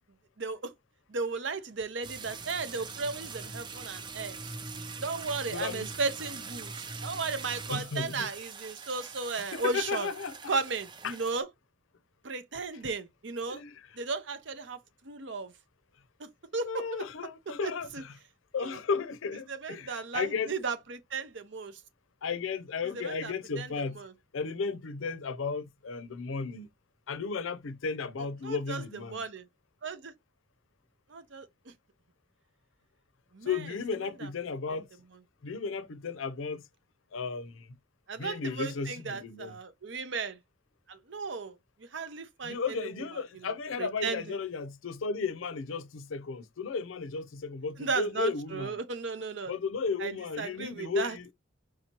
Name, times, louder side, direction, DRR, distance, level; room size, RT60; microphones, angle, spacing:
voice 1, 0.4-0.7 1.1-4.4 5.0-10.1 10.5-11.5 12.2-13.6 14.0-14.8 15.0-15.5 16.2-17.0 17.6-18.0 18.6-18.8 19.5-21.8 23.0-23.7 24.0-24.1 28.4-28.8 29.1-29.5 29.8-30.1 31.1-31.5 33.3-33.5 34.2-34.3 38.1-40.4 40.9-42.9 43.8-44.2 47.8-49.5 50.0-51.2, right 4 dB, 70° right, 0.8 m, -35 dB
sound 1, 2.0-11.4, right 4 dB, 25° right, 0.5 m, -42 dB
voice 2, 5.5-5.9 7.7-8.3 9.5-10.5 11.0-11.2 13.5-13.7 16.6-18.2 18.5-20.5 22.2-24.0 24.3-26.7 27.1-29.2 33.4-34.9 35.4-36.6 37.1-37.8 38.2-39.6 42.4-48.8 49.5-51.3, left 5 dB, 90° left, 0.5 m, -34 dB
4.8 x 2.8 x 2.9 m
head